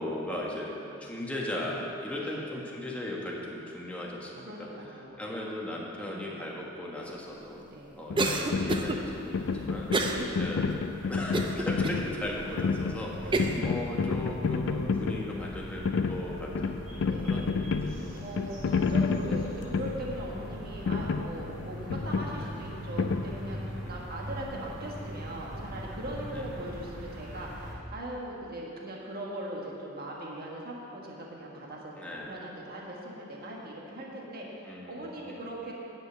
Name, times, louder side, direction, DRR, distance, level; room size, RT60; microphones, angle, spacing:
voice 1, 0.0-4.7 5.2-7.7 8.0-10.7 11.1-18.3 18.9-19.4 20.3-20.7 22.4-22.6 23.5-24.1 26.3-26.4 32.0-32.3 34.6-35.5, left 1 dB, 5° left, -4 dB, 1.3 m, -38 dB
voice 2, 2.1-2.5 4.4-5.3 5.9-6.4 7.6-8.0 10.0-10.3 13.2-13.6 17.1-17.5 18.2-35.8, right 1 dB, 50° right, -3 dB, 1.5 m, -40 dB
sound 1, 8.1-23.9, left 4 dB, 60° left, 0.4 m, -31 dB
Cough, 8.2-9.0 9.9-10.3 10.7-10.8 11.3-12.0 12.6-12.7 13.3-13.6, right 2 dB, 25° right, 0.6 m, -28 dB
sound 2, 8.5-27.7, equal, 80° right, 1.9 m, -42 dB
9.5 x 5.2 x 8.1 m, 2.8 s
head